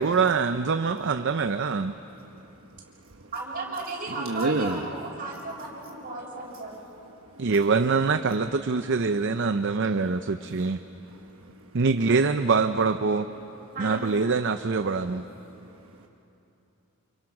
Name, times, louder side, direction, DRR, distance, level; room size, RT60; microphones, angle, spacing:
voice 1, 0.0-1.9 7.4-10.8 11.7-13.3 13.8-15.3, right 4 dB, 60° right, 9 dB, 0.6 m, -24 dB
voice 2, 2.3-3.3 4.1-4.9 6.6-6.8 7.3-7.6 10.6-10.7 11.1-11.7 15.6-16.1, right 2 dB, 80° right, 2 dB, 1.1 m, -33 dB
voice 3, 3.3-6.9 13.7-14.1, right 2 dB, 45° right, -3 dB, 6.5 m, -35 dB
29.5 x 28.5 x 6.1 m, 3.0 s
head